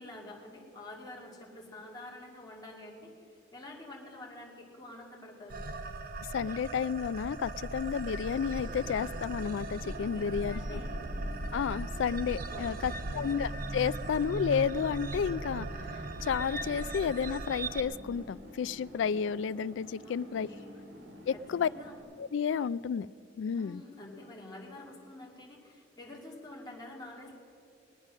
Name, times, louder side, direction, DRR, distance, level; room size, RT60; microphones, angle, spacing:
voice 1, 0.0-5.7 10.1-11.0 12.5-13.3 20.0-20.7 21.3-22.0 23.5-27.4, left 1 dB, 20° left, -3 dB, 2.4 m, -48 dB
sound 1, 5.5-17.8, right 2 dB, 50° right, 0.8 m, -38 dB
voice 2, 6.3-10.8 11.5-15.7 15.9-20.5 21.3-21.7 22.2-23.1 23.4-23.8, left 7 dB, 70° left, 19 dB, 0.3 m, -31 dB
sound 2, 8.3-22.0, equal, 70° right, 2.5 m, -50 dB
20.5 x 9.0 x 6.4 m, 2.6 s
head